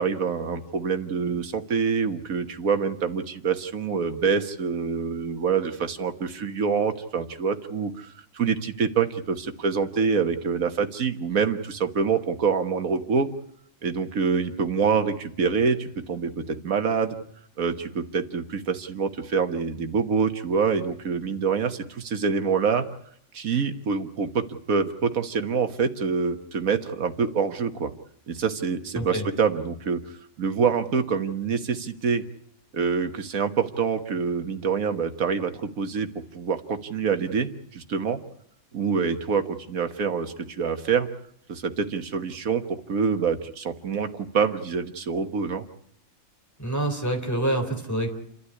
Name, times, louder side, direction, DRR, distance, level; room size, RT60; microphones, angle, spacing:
voice 1, 0.0-13.3 13.8-17.2 17.6-22.9 23.3-27.9 28.3-30.0 30.4-32.2 32.7-36.1 36.3-38.2 38.7-41.1 41.5-44.1 44.3-45.7, right 5 dB, 80° right, 7 dB, 1.7 m, -26 dB
voice 2, 46.6-48.1, right 1 dB, 10° left, 2 dB, 3.6 m, -26 dB
29.0 x 12.5 x 9.8 m, 0.69 s
omnidirectional pair, 1.4 m